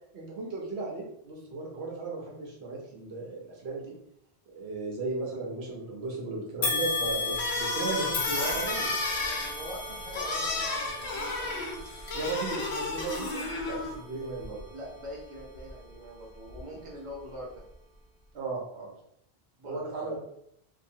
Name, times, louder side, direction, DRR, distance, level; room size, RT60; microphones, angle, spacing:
voice 1, 0.1-4.0 4.5-8.9 12.1-14.6 18.3-18.9 19.6-20.2, right 3 dB, 80° right, -2 dB, 1.0 m, -36 dB
sound 1, 6.6-15.9 16.4-16.6 17.6-17.7, left 3 dB, 60° left, 0.7 m, -35 dB
sound 2, 7.3-14.0, left 2 dB, 90° left, 0.9 m, -33 dB
voice 2, 8.3-11.6 14.4-17.6 19.6-20.2, equal, 35° right, -4 dB, 0.8 m, -44 dB
2.8 x 2.1 x 2.7 m, 0.74 s
omnidirectional pair, 1.1 m